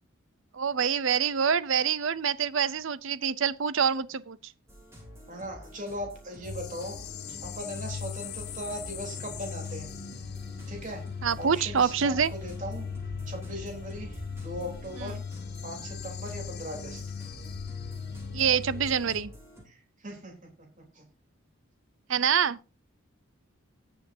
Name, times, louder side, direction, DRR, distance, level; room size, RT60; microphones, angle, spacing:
voice 1, 0.5-4.4 11.2-12.3 15.0-15.1 18.3-19.3 22.1-22.6, right 7 dB, 60° right, 0.6 m, -26 dB
sound 1, 4.7-19.6, equal, 10° right, 4.3 m, -49 dB
voice 2, 5.3-7.0 7.3-9.9 10.7-11.0 11.4-12.8 13.3-15.2 15.6-17.0 19.7-21.1, equal, 35° right, 3.6 m, -39 dB
sound 2, 6.4-19.2, left 6 dB, 50° left, 1.0 m, -39 dB
sound 3, 11.6-18.5, equal, 5° left, 4.3 m, -51 dB
18.5 x 7.0 x 2.7 m
head